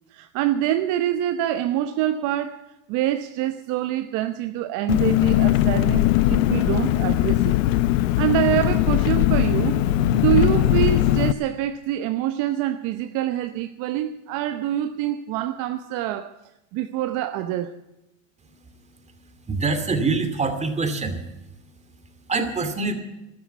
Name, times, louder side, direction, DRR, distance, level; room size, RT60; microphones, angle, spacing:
voice 1, 0.1-7.6 7.9-16.3 16.7-17.7, right 12 dB, 50° right, 0.9 m, -25 dB
Engine, 4.9-11.3, left 14 dB, 75° left, 0.8 m, -20 dB
voice 2, 19.5-21.2 22.3-22.9, right 3 dB, 15° right, 2.5 m, -24 dB
13.0 x 12.5 x 8.3 m
supercardioid pair, 120°, 39 cm